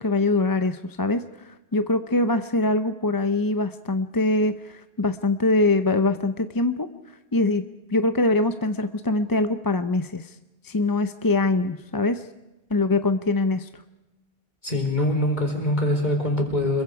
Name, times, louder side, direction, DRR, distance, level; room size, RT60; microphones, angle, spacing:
voice 1, 0.0-6.9 7.3-7.6 7.9-10.3 10.6-12.2 12.7-13.8, left 2 dB, 25° left, 9 dB, 0.6 m, -23 dB
voice 2, 14.6-16.8, left 1 dB, 45° left, 2 dB, 4.4 m, -23 dB
26.5 x 22.5 x 4.9 m, 1.0 s
omnidirectional pair, 1.1 m